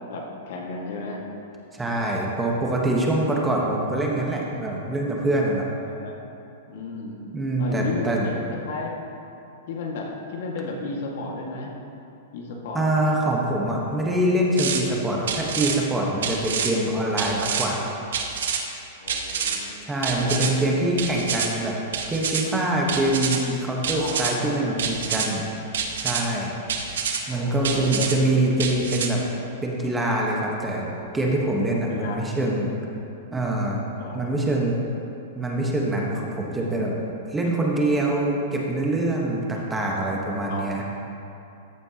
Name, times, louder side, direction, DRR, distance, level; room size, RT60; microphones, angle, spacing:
voice 1, 0.1-1.2 6.0-6.1 6.7-7.2 7.6-8.4 8.7-8.9 9.7-11.7 12.3-12.9 19.0-19.7 20.0-20.8 23.9-24.8 27.3-28.1 31.9-32.5 34.0-34.3 40.5-40.7, left 3 dB, 65° left, -1 dB, 1.8 m, -33 dB
voice 2, 1.7-5.7 7.3-8.3 12.7-17.9 19.8-21.8 22.1-25.4 26.0-26.6 27.3-29.2 29.6-30.9 31.1-32.7 33.3-33.8 34.1-34.8 35.3-37.0 37.3-40.8, right 1 dB, 10° right, -2 dB, 1.2 m, -24 dB
sound 1, 14.6-14.8 15.3-15.8 16.2-16.7 17.2-17.7 18.1-18.6 19.1-19.6 20.0-20.5 21.0-21.5 21.9-22.4 22.9-23.4 23.8-24.3 24.8-25.3 25.7-26.2 26.7-27.2 27.6-28.2 28.6-29.1, right 7 dB, 85° right, 1.0 m, -27 dB
14.0 x 8.7 x 2.9 m, 2.8 s
supercardioid pair, 155°, 0 cm